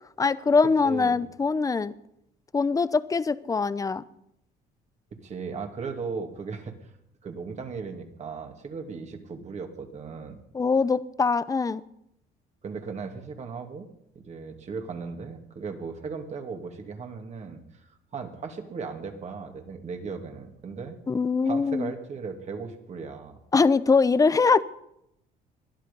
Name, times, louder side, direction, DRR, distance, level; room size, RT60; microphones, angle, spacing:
voice 1, 0.2-1.9 2.5-4.0 10.5-11.8 21.1-21.9 23.5-24.6, left 4 dB, 20° left, 16 dB, 0.8 m, -22 dB
voice 2, 0.8-1.3 5.2-6.9 7.2-10.4 12.6-13.9 14.1-21.0 21.4-23.4, right 5 dB, 40° right, 4 dB, 2.7 m, -37 dB
20.5 x 12.5 x 5.5 m, 0.78 s
cardioid pair, 110°, 17 cm